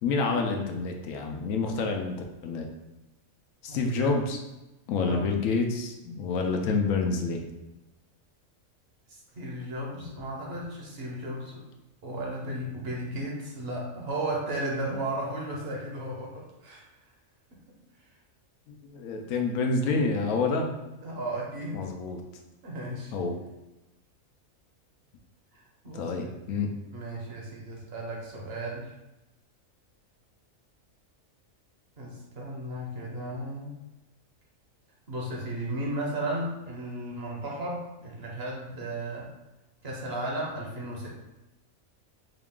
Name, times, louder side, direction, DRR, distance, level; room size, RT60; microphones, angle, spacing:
voice 1, 0.0-2.1 2.4-2.7 3.6-4.4 4.9-7.4 18.7-20.7 21.7-22.2 23.1-23.3 25.9-26.7, left 4 dB, 80° left, 3 dB, 1.0 m, -28 dB
voice 2, 3.7-4.1 5.0-5.3 9.1-11.6 12.0-16.8 21.0-21.9 22.6-23.1 25.5-26.3 26.9-28.9 32.0-33.8 35.1-39.3 39.8-41.1, right 1 dB, 55° right, -3 dB, 1.0 m, -35 dB
3.8 x 2.4 x 3.6 m, 1.0 s
omnidirectional pair, 1.4 m